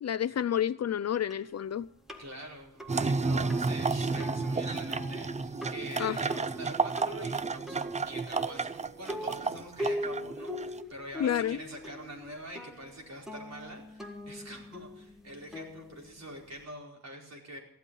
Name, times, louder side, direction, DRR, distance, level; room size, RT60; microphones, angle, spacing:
voice 1, 0.0-1.9 6.0-6.2 11.2-11.6, left 9 dB, 50° left, 0.4 m, -29 dB
sound 1, 1.3-16.6, left 1 dB, ahead, 1.8 m, -42 dB
voice 2, 2.2-17.6, right 1 dB, 50° right, 4.6 m, -45 dB
sound 2, 2.9-10.8, right 4 dB, 20° right, 0.5 m, -31 dB
15.0 x 12.0 x 5.4 m
wide cardioid pair, 155°, 34 cm